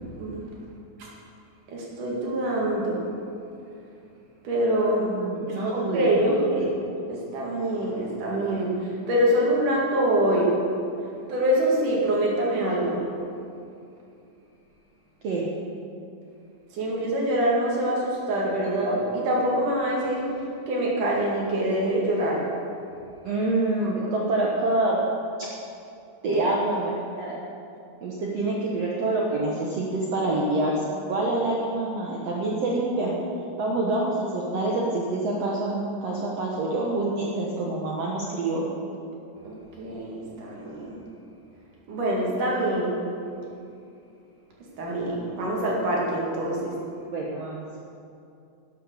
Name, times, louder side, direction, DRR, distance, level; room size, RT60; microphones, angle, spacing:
voice 1, 1.7-3.0 4.4-5.2 5.7-6.7 7.1-10.5 11.3-13.0 16.7-22.5 39.4-41.0 41.9-42.9 44.8-46.7, right 1 dB, 55° right, -3 dB, 3.4 m, -25 dB
voice 2, 5.0-6.7 15.2-15.5 23.2-25.0 25.4-25.5 26.2-27.4 28.0-33.2 33.6-38.6 47.1-47.6, right 2 dB, 90° right, -3 dB, 1.4 m, -26 dB
12.0 x 8.8 x 6.8 m, 2.6 s
omnidirectional pair, 4.8 m